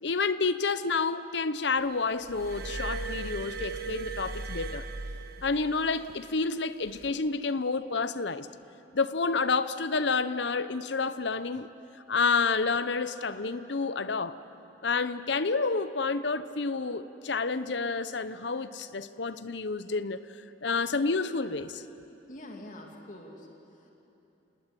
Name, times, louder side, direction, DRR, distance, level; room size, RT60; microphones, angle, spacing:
voice 1, 0.0-4.8 5.4-8.5 8.9-11.7 12.1-14.4 14.8-20.2 20.6-21.8, left 4 dB, 65° left, 14 dB, 0.8 m, -29 dB
Glass, 2.3-5.9 6.9-7.1, right 3 dB, 55° right, 1.5 m, -37 dB
voice 2, 22.3-23.9, left 1 dB, 45° left, 1 dB, 2.6 m, -46 dB
28.0 x 19.0 x 9.9 m, 3.0 s
head